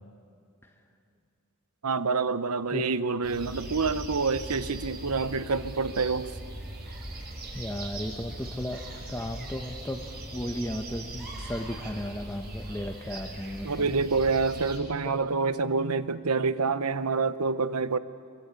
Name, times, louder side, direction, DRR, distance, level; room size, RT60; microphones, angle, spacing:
voice 1, 1.8-6.3 13.6-18.0, right 4 dB, 90° right, 14 dB, 1.0 m, -27 dB
sound 1, 3.2-14.8, right 1 dB, 45° right, 5.4 m, -40 dB
voice 2, 7.5-8.8 9.1-10.0 10.3-14.0, left 1 dB, 10° left, 4 dB, 1.1 m, -35 dB
25.5 x 24.0 x 8.3 m, 2.4 s
head